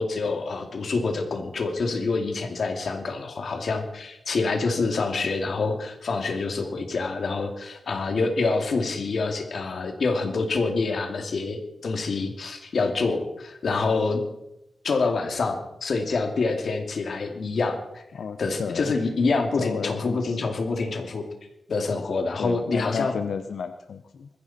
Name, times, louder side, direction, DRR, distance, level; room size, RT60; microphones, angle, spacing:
voice 1, 0.0-14.2 14.8-18.0 18.4-21.2 21.7-23.2, left 3 dB, 65° left, 4 dB, 2.6 m, -26 dB
voice 2, 18.1-18.9 19.6-20.5 22.4-24.3, left 6 dB, 80° left, 8 dB, 0.8 m, -32 dB
21.0 x 15.0 x 4.3 m, 0.84 s
wide cardioid pair, 145°, 0 cm